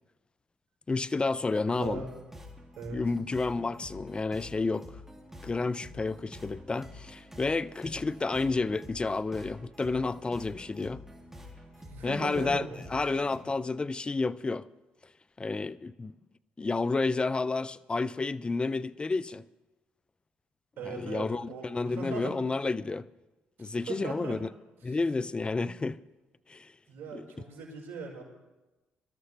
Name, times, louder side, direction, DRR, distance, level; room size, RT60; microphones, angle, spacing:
voice 1, 0.9-2.0 2.9-4.9 5.4-11.0 12.0-14.6 15.4-16.1 16.6-19.4 20.9-23.1 23.6-24.5 24.8-26.0 26.5-26.7 27.1-27.3, left 3 dB, 25° left, 0.5 m, -30 dB
sound 1, 1.7-13.4, left 1 dB, 10° right, 2.8 m, -48 dB
voice 2, 1.7-2.1 2.8-3.0 11.8-12.7 20.8-22.5 23.6-24.4 24.9-25.0 26.9-28.2, right 4 dB, 65° right, 5.0 m, -39 dB
22.5 x 13.0 x 3.3 m
supercardioid pair, 65°, 4 cm